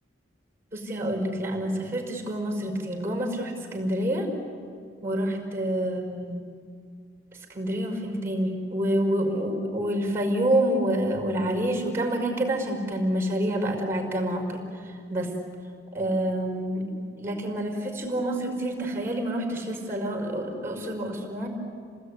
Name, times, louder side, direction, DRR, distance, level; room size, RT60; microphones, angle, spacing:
voice 1, 0.7-4.3 5.0-6.4 7.5-14.6 15.1-15.3 15.9-16.9 17.2-21.5, right 1 dB, 15° right, 3 dB, 5.2 m, -27 dB
28.5 x 19.5 x 9.7 m, 2.2 s
head